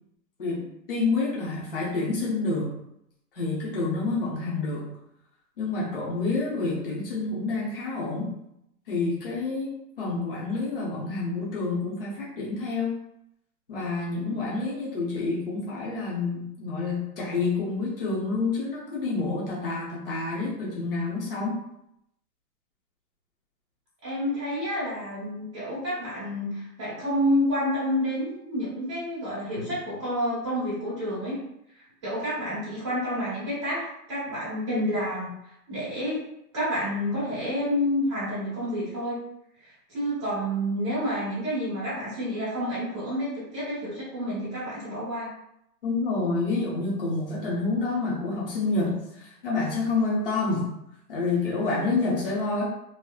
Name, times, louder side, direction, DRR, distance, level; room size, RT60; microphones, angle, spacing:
voice 1, 0.4-2.7 3.3-4.9 5.6-8.3 8.9-13.0 13.7-21.6 45.8-50.7 51.1-52.6, left 3 dB, 35° left, -6 dB, 0.7 m, -28 dB
voice 2, 14.2-14.8 24.0-31.4 32.0-36.3 36.5-39.2 39.6-45.3, equal, 20° right, -11 dB, 1.0 m, -29 dB
3.0 x 2.9 x 2.3 m, 0.79 s
hypercardioid pair, 175°, 48 cm